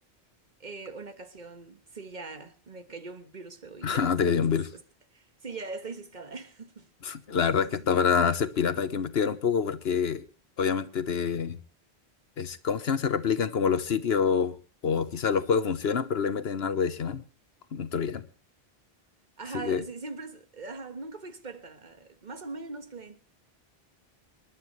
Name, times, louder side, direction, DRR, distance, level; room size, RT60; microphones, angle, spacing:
voice 1, 0.6-4.5 4.7-4.8 5.1-6.9 7.7-8.0 19.4-23.2, right 3 dB, 45° right, 1.6 m, -41 dB
voice 2, 3.8-4.7 7.0-10.2 10.6-11.6 12.4-14.5 14.8-17.2 17.7-18.2 19.5-19.8, left 6 dB, 75° left, 1.3 m, -26 dB
27.0 x 11.5 x 3.2 m
omnidirectional pair, 1.1 m